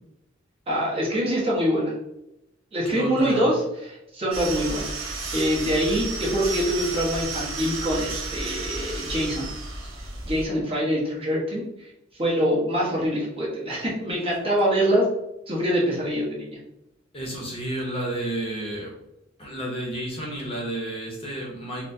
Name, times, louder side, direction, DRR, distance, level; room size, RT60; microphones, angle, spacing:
voice 1, 0.7-1.9 2.7-3.6 3.9-9.5 10.2-15.1 15.5-16.6, equal, 30° right, -5 dB, 1.0 m, -25 dB
voice 2, 2.8-3.5 17.1-18.9 19.4-21.9, right 1 dB, 30° left, -2 dB, 0.8 m, -31 dB
sound 1, 4.3-10.5, right 3 dB, 85° right, 0.9 m, -32 dB
4.1 x 2.1 x 2.6 m, 0.87 s
head